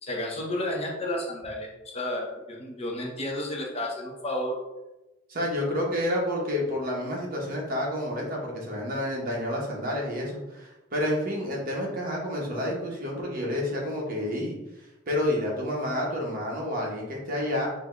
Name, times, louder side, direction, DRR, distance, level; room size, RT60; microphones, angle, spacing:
voice 1, 0.0-4.5, left 1 dB, 30° left, -1 dB, 0.8 m, -32 dB
voice 2, 5.3-14.6 15.1-17.7, left 1 dB, 45° right, -2 dB, 1.1 m, -29 dB
5.0 x 2.2 x 3.7 m, 1.0 s
head